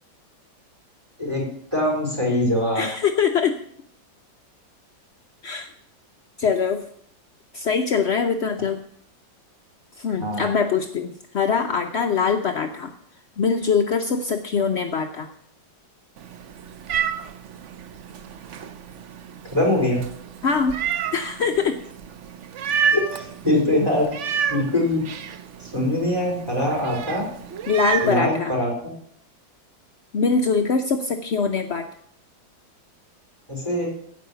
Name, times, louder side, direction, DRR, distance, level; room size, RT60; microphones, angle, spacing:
voice 1, 1.7-2.8 10.2-10.5 19.5-20.0 22.9-24.0 24.5-25.0 25.6-27.2 28.0-28.7 33.5-33.9, left 1 dB, 10° right, -3 dB, 4.4 m, -22 dB
voice 2, 2.7-3.6 5.4-5.7 6.4-6.8 7.5-8.8 10.0-12.9 13.4-15.3 20.4-20.8 21.1-21.8 27.7-28.5 30.1-31.9, left 5 dB, 70° left, 5 dB, 0.6 m, -23 dB
Meow, 16.2-28.2, right 7 dB, 65° right, 0.7 m, -30 dB
15.5 x 5.4 x 6.9 m, 0.66 s
omnidirectional pair, 2.0 m